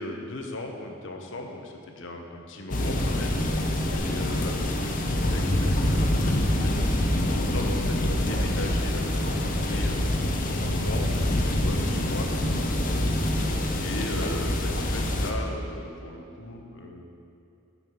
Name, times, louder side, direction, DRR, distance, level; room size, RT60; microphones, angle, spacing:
voice 1, 0.0-12.3 12.6-17.0, left 1 dB, 65° left, 3 dB, 1.0 m, -38 dB
sound 1, 2.7-15.3, left 1 dB, 40° left, 0.7 m, -25 dB
7.0 x 6.2 x 7.1 m, 2.6 s
head